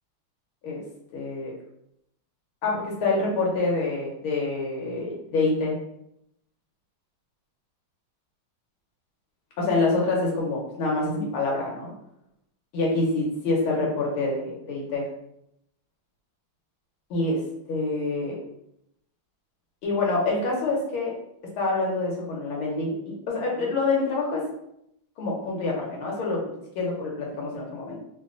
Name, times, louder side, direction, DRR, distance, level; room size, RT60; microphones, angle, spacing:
voice 1, 1.1-1.5 2.6-5.8 9.6-11.9 12.7-15.1 17.1-17.4 17.7-18.4 19.8-21.1 21.6-24.4 25.2-28.0, left 3 dB, 85° left, -3 dB, 1.7 m, -26 dB
3.6 x 2.2 x 3.7 m, 0.77 s
omnidirectional pair, 2.3 m